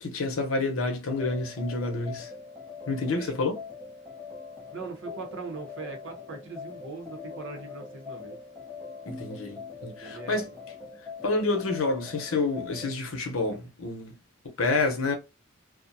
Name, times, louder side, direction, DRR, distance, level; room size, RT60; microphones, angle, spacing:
voice 1, 0.0-2.3 2.9-3.5 9.1-10.5 11.2-14.1 14.6-15.2, left 3 dB, 75° left, 0.8 m, -28 dB
sound 1, 1.1-13.0, left 4 dB, 5° left, 0.5 m, -43 dB
voice 2, 4.7-8.4 10.0-10.5, right 4 dB, 60° right, 0.8 m, -40 dB
2.4 x 2.1 x 2.6 m
head